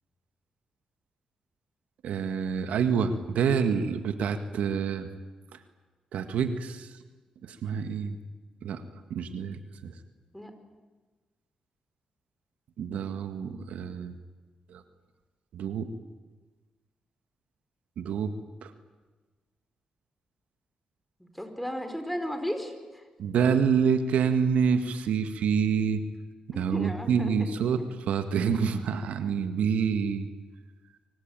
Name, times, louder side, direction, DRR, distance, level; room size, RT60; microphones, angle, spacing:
voice 1, 2.0-5.1 6.1-6.9 7.4-8.2 8.6-8.8 9.1-9.9 12.8-14.1 14.7-14.8 15.5-15.9 18.0-18.3 18.6-18.7 23.2-26.0 26.6-27.8 28.1-30.3, right 6 dB, 90° right, 8 dB, 1.8 m, -27 dB
voice 2, 21.2-23.0 26.5-27.8 28.7-28.8, equal, 5° left, 7 dB, 5.3 m, -35 dB
26.5 x 24.5 x 9.1 m, 1.3 s
cardioid pair, 70°, 2 cm